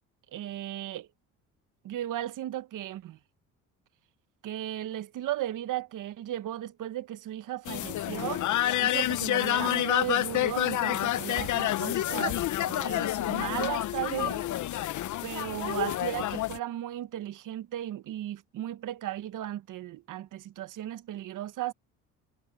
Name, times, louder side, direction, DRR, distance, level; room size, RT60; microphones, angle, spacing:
voice 1, 0.3-1.1 1.8-3.2 4.4-8.5 8.8-12.4 12.6-14.5 15.2-21.7, right 13 dB, 60° right, 1.4 m, -35 dB
sound 1, 7.7-16.6, left 13 dB, 55° left, 1.0 m, -29 dB
supercardioid pair, 80°, 35 cm